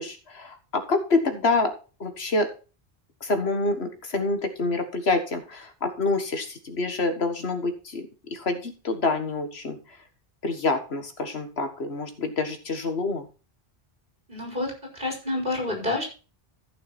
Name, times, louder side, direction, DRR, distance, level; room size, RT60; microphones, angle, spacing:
voice 1, 0.0-1.7 2.0-2.5 3.2-8.0 8.3-9.8 10.4-13.3, left 3 dB, 90° left, 8 dB, 1.8 m, -27 dB
voice 2, 14.3-16.0, left 2 dB, 50° right, 1 dB, 4.9 m, -29 dB
14.5 x 6.4 x 4.2 m, 0.34 s
omnidirectional pair, 1.0 m